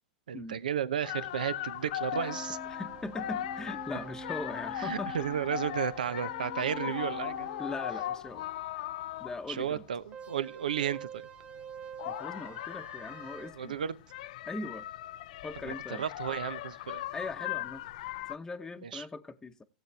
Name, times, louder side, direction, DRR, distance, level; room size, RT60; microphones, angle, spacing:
voice 1, 0.3-2.6 4.8-7.5 9.5-11.2 13.5-14.0 15.6-17.1 18.8-19.0, right 9 dB, 85° right, 0.7 m, -33 dB
sound 1, 1.0-9.9 11.5-18.3, left 13 dB, 65° left, 0.4 m, -38 dB
sound 2, 2.1-8.2 10.1-13.5, right 5 dB, 25° right, 0.9 m, -47 dB
voice 2, 2.6-5.1 6.9-7.0 7.6-8.5 8.7-8.8 9.2-9.8 12.0-13.8 14.4-14.9 15.4-16.1 17.1-17.8 18.3-19.6, left 3 dB, 10° left, 0.9 m, -40 dB
16.0 x 7.9 x 3.4 m
hypercardioid pair, 105°, 4 cm